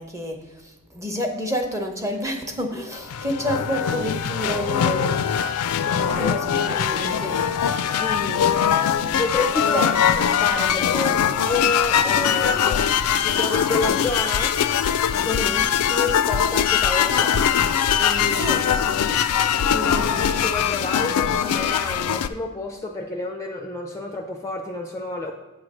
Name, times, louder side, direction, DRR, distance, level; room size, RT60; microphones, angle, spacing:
voice 1, 0.0-5.3 6.2-7.4 9.7-10.1 15.3-15.7 18.1-18.6, equal, 15° right, 3 dB, 0.7 m, -29 dB
sound 1, 2.9-22.3, left 8 dB, 90° left, 0.4 m, -22 dB
voice 2, 5.8-6.3 6.7-7.1 8.0-8.6 9.2-14.6 15.1-15.5 15.9-17.4 18.0-18.5 19.7-25.3, left 2 dB, 15° left, 2 dB, 0.4 m, -29 dB
8.4 x 3.2 x 6.1 m, 1.1 s
head